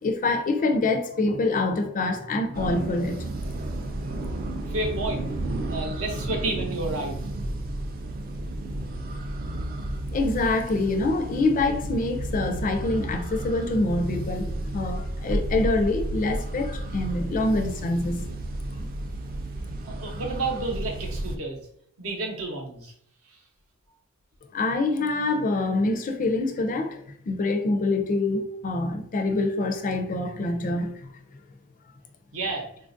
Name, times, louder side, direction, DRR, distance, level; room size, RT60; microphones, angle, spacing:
voice 1, 0.0-3.3 10.1-18.3 18.8-18.9 24.5-27.0 27.3-31.1, left 2 dB, 35° left, 0.4 m, -25 dB
sound 1, 2.5-21.4, right 1 dB, 40° right, 0.3 m, -32 dB
voice 2, 4.7-5.2 5.7-7.3 19.8-21.6 22.0-22.9 32.3-32.7, right 2 dB, 65° right, 0.8 m, -30 dB
3.8 x 2.4 x 2.5 m
head